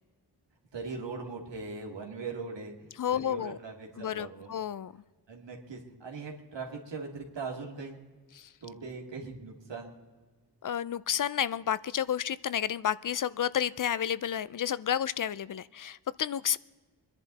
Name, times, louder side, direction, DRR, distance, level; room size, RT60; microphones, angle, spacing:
voice 1, 0.7-2.7 3.1-4.5 5.3-8.0 8.6-9.9, right 4 dB, 90° right, 1 dB, 2.7 m, -40 dB
voice 2, 3.0-3.6 4.0-4.9 8.4-8.5 10.6-16.6, left 9 dB, 50° left, 18 dB, 0.4 m, -31 dB
25.0 x 10.5 x 4.1 m, 1.3 s
wide cardioid pair, 90°, 42 cm